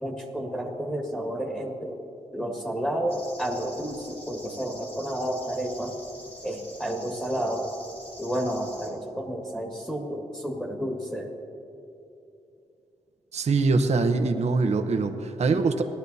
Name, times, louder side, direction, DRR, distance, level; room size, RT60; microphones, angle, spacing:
voice 1, 0.0-2.0 2.3-6.0 6.4-7.7 8.2-11.3, equal, 5° left, 0 dB, 1.7 m, -31 dB
sound 1, 3.1-8.9, equal, 50° left, 2.8 m, -46 dB
voice 2, 13.3-15.8, right 3 dB, 60° right, 6 dB, 0.8 m, -23 dB
18.5 x 11.5 x 2.7 m, 2.8 s
cardioid pair, 80°, 13 cm